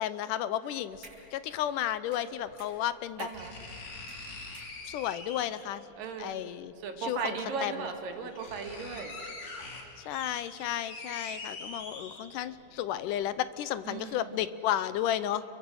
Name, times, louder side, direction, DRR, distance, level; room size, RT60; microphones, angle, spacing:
voice 1, 0.0-3.3 4.8-5.8 6.2-7.9 10.1-15.4, left 11 dB, 80° left, 14 dB, 2.3 m, -33 dB
sound 1, 0.6-1.4 2.1-3.6 4.1-5.2, right 2 dB, 35° right, 6.5 m, -54 dB
sound 2, 0.9-1.0 2.5-2.6 3.3-5.7 7.1-7.2 7.8-7.9 8.1-12.6 13.0-13.1, left 3 dB, 65° left, 4.9 m, -43 dB
voice 2, 3.2-3.5 6.0-6.4 6.8-9.1 13.9-14.4, right 5 dB, 80° right, 4 dB, 3.9 m, -37 dB
30.0 x 23.0 x 7.9 m, 2.9 s
omnidirectional pair, 3.8 m